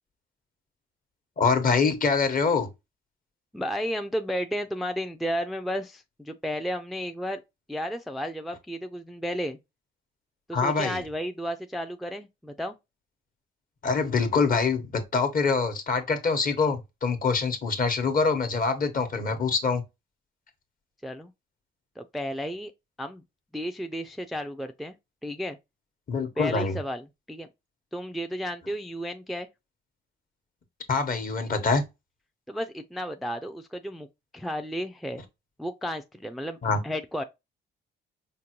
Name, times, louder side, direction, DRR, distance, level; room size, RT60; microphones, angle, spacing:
voice 1, 1.4-2.7 10.5-11.0 13.8-19.8 26.1-26.7 30.9-31.8 36.6-36.8, left 4 dB, 45° left, 1.0 m, -25 dB
voice 2, 3.5-7.4 7.7-9.6 10.5-12.8 21.0-21.3 22.0-22.7 23.0-23.2 23.5-25.0 25.2-25.6 26.4-27.5 27.9-29.5 32.5-34.1 34.3-35.2 35.6-36.6 36.8-37.2, equal, ahead, 0.3 m, -33 dB
5.1 x 2.2 x 2.9 m
cardioid pair, 90°, 20 cm